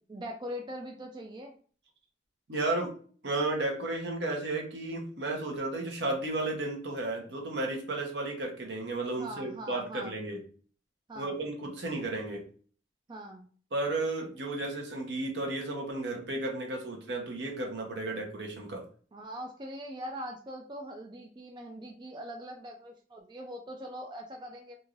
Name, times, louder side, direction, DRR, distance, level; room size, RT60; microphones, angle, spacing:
voice 1, 0.0-1.5 9.2-10.2 11.1-11.4 13.1-13.5 19.1-24.8, equal, 25° right, 2 dB, 0.3 m, -42 dB
voice 2, 2.5-2.9 3.2-10.4 11.1-12.4 13.7-18.9, right 2 dB, 75° right, 1 dB, 0.9 m, -33 dB
3.1 x 2.6 x 2.4 m, 0.43 s
head